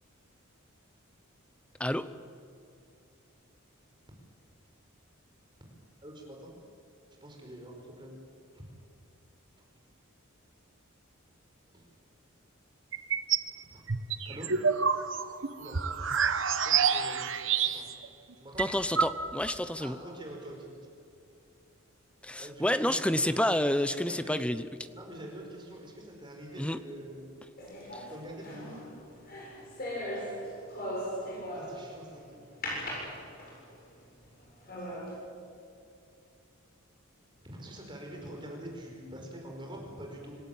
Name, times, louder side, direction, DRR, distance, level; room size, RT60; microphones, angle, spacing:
voice 1, 6.0-6.5 7.2-8.2 8.5-8.6 11.7-11.8 13.6-13.8 14.3-14.5 15.6-15.8 16.5-17.3 17.7-17.9 18.4-18.7 19.8-20.8 22.4-23.5 23.7-24.6 24.9-27.4 28.1-28.8 31.5-33.1 37.4-40.3, right 1 dB, 20° right, 0 dB, 5.2 m, -45 dB
sound 1, 12.9-13.5 13.9-18.1 18.3-18.4 18.6-19.6, right 6 dB, 60° right, 1.3 m, -28 dB
voice 2, 18.6-20.0 22.2-24.7 26.6-26.8 27.9-28.0, left 1 dB, 5° left, 12 dB, 0.7 m, -29 dB
sound 2, 27.6-32.0 32.6-33.7 34.2-34.3 34.7-35.1, equal, 45° left, 7.9 m, -38 dB
26.5 x 17.0 x 9.0 m, 2.6 s
head